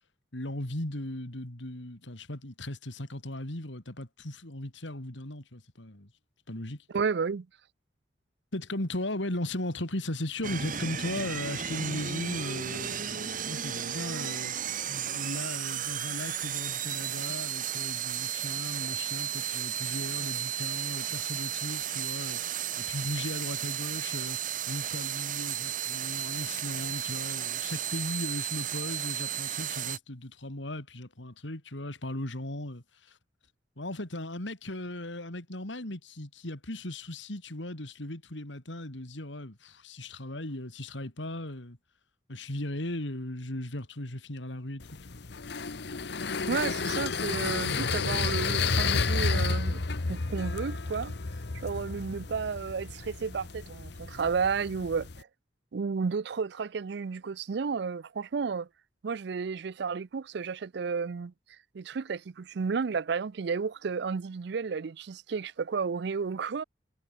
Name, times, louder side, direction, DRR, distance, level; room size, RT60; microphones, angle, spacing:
voice 1, 0.3-6.1 6.5-6.8 8.5-14.5 14.9-22.4 22.8-24.4 24.7-33.2 33.8-41.8 42.3-44.8 45.1-45.2, left 1 dB, 75° left, 3.4 m, -37 dB
voice 2, 6.9-7.5 46.5-49.8 50.1-51.1 51.5-55.3 55.7-58.7 59.0-61.3 61.7-66.6, right 5 dB, 60° right, 0.4 m, -32 dB
sound 1, 10.4-30.0, right 9 dB, 45° right, 2.1 m, -34 dB
sound 2, 44.8-55.2, left 4 dB, 60° left, 1.0 m, -31 dB
head